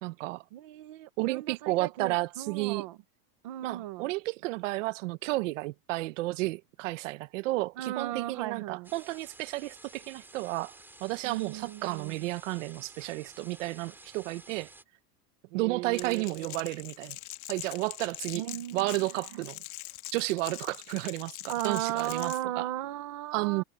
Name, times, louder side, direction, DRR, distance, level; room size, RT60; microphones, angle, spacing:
voice 1, 0.0-0.4 1.2-2.8 3.6-14.7 15.5-17.2 17.5-18.4 18.7-19.6 20.1-22.7 23.3-23.6, right 20 dB, 50° right, 0.8 m, -32 dB
voice 2, 0.5-3.0 3.4-4.1 7.8-8.9 11.2-12.2 15.5-16.5 18.3-19.0 19.3-19.4 21.5-23.6, right 14 dB, 25° right, 0.4 m, -36 dB
sound 1, 8.8-14.8, right 2 dB, 5° right, 3.4 m, -53 dB
Crackle, 15.9-22.4, left 19 dB, 65° left, 2.2 m, -43 dB
supercardioid pair, 175°, 48 cm